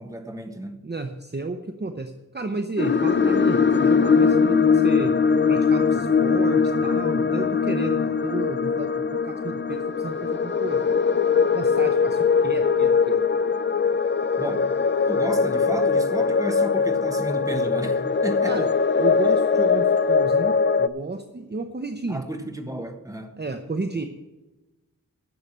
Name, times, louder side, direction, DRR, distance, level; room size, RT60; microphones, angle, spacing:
voice 1, 0.0-0.9 14.4-14.7 15.1-18.6 22.1-23.4, right 1 dB, 10° right, 1.4 m, -32 dB
voice 2, 0.8-5.1 5.5-11.0 11.5-13.2 18.5-18.7 19.0-22.2 23.4-24.1, right 3 dB, 30° right, 0.8 m, -32 dB
sound 1, 2.8-20.9, left 5 dB, 35° left, 0.5 m, -21 dB
11.0 x 6.7 x 7.5 m
wide cardioid pair, 65°, 33 cm